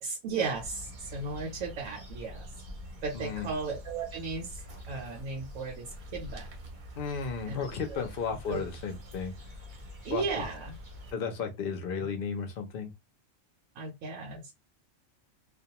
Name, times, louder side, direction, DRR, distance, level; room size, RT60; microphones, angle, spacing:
voice 1, 0.0-2.5 3.0-4.6 4.9-6.5 7.5-8.0 8.5-8.6 10.0-10.7 13.7-14.5, right 4 dB, 90° right, 1.0 m, -35 dB
sound 1, 0.5-11.1, left 1 dB, 45° right, 0.7 m, -45 dB
voice 2, 3.1-3.5 7.0-9.3 10.1-10.4 11.1-12.9, left 6 dB, 60° left, 0.6 m, -34 dB
2.3 x 2.2 x 2.8 m
omnidirectional pair, 1.4 m